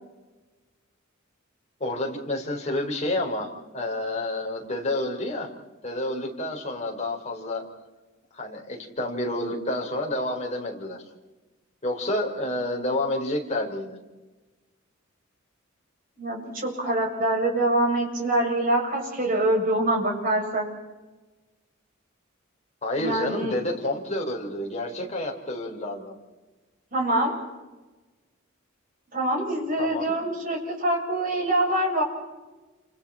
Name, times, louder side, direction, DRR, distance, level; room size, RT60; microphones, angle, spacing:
voice 1, 1.8-5.5 5.8-7.6 8.3-11.0 11.8-14.0 22.8-26.2 29.8-30.1, left 1 dB, 35° left, 0 dB, 4.6 m, -29 dB
voice 2, 16.2-20.7 23.0-23.5 26.9-27.4 29.1-32.0, right 1 dB, 45° right, -1 dB, 7.6 m, -25 dB
29.0 x 27.0 x 4.5 m, 1.2 s
head